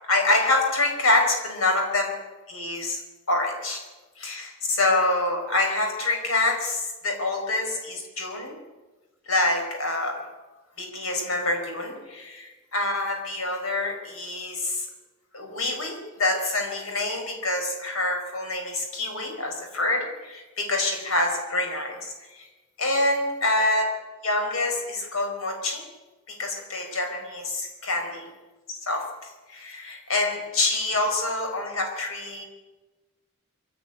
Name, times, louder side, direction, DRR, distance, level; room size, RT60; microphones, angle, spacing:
voice 1, 0.1-2.1 2.5-3.0 3.3-3.8 4.2-8.6 9.3-10.2 10.8-14.9 15.3-22.0 22.3-22.5 22.8-23.9 24.2-25.8 26.3-28.3 28.9-29.0 29.5-32.4, left 2 dB, 80° left, 4 dB, 4.7 m, -26 dB
23.0 x 13.5 x 9.8 m, 1.2 s
head